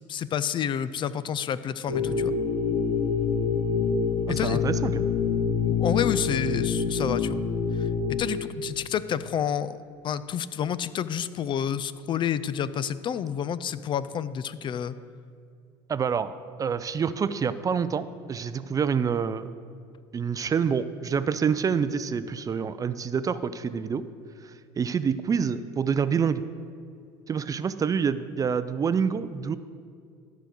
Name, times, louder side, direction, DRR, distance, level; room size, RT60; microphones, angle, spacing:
voice 1, 0.1-2.3 4.3-4.6 5.7-7.4 7.7-7.9 8.2-9.8 10.0-14.9, left 8 dB, 40° left, 15 dB, 0.4 m, -29 dB
sound 1, 1.9-8.2, left 6 dB, 80° left, 2.7 m, -26 dB
voice 2, 4.3-5.1 15.9-16.3 16.6-19.5 20.1-24.0 24.4-24.5 24.8-26.4 27.3-29.6, right 6 dB, 30° right, 13 dB, 0.4 m, -27 dB
13.0 x 5.1 x 6.4 m, 2.3 s
supercardioid pair, 95°, 13 cm